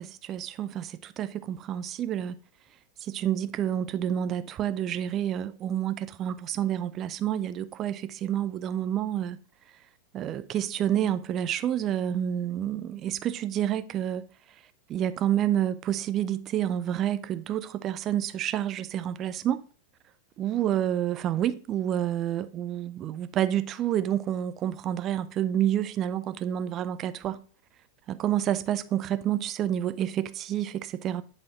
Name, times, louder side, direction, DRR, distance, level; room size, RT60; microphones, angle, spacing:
voice 1, 0.0-2.4 3.0-9.4 10.1-14.3 14.9-19.6 20.4-27.4 28.1-31.2, right 11 dB, 30° right, 0.5 m, -29 dB
10.0 x 4.2 x 3.0 m
figure-of-eight pair, 90°, 0 cm